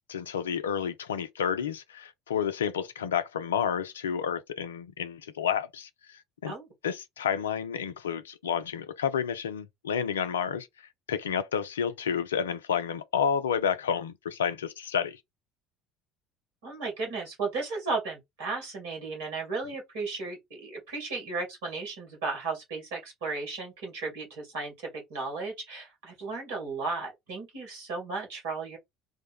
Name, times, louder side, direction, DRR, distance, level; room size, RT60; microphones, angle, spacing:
voice 1, 0.1-6.5 6.8-15.2, left 7 dB, 80° left, 0.4 m, -30 dB
voice 2, 16.6-28.8, right 3 dB, 70° right, 1.9 m, -35 dB
3.5 x 2.1 x 3.4 m
figure-of-eight pair, 60°, 0 cm